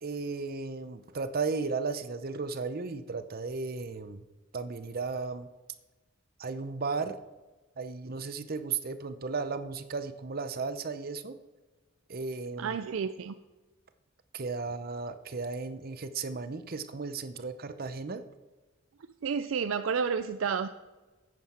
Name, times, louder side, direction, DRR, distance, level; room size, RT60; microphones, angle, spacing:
voice 1, 0.0-4.2 4.5-5.5 6.4-7.2 7.8-11.4 12.1-12.8 14.3-18.2, right 4 dB, 50° right, 11 dB, 0.7 m, -35 dB
voice 2, 12.6-13.3 19.2-20.7, right 6 dB, 90° right, 10 dB, 0.4 m, -30 dB
10.5 x 9.4 x 4.3 m, 1.2 s
head